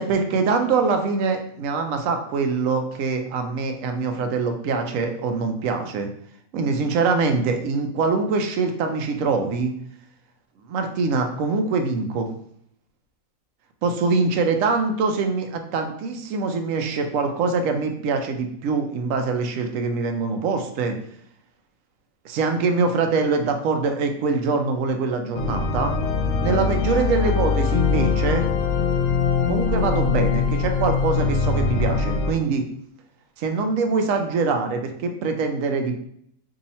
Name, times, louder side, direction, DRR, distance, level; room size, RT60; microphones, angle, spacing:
voice 1, 0.0-6.1 6.5-9.7 10.7-12.3 13.8-21.0 22.2-26.0 26.4-28.5 29.5-32.6 33.4-36.0, right 4 dB, 75° right, 5 dB, 0.9 m, -24 dB
sound 1, 25.3-32.3, left 5 dB, 70° left, 0.8 m, -22 dB
2.8 x 2.7 x 4.0 m, 0.67 s
omnidirectional pair, 1.4 m